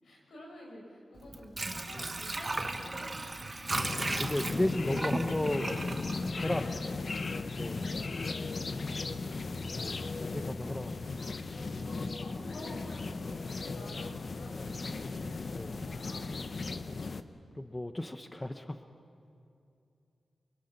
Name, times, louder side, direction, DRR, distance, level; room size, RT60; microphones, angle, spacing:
voice 1, 0.0-3.7 6.3-6.8 7.6-9.7 11.0-15.4 15.8-17.0, left 1 dB, 80° left, -2 dB, 6.1 m, -51 dB
Water / Sink (filling or washing), 1.2-7.0 7.4-7.5, right 2 dB, 30° right, 1.5 m, -36 dB
sound 1, 3.7-17.2, left 3 dB, 55° left, 0.8 m, -36 dB
voice 2, 4.2-5.9 6.4-6.6 7.5-7.8 9.7-10.9 15.5-15.8 17.5-18.8, left 1 dB, 20° left, 8 dB, 0.9 m, -34 dB
25.0 x 23.5 x 5.9 m, 2.5 s
cardioid pair, 70°, 0 cm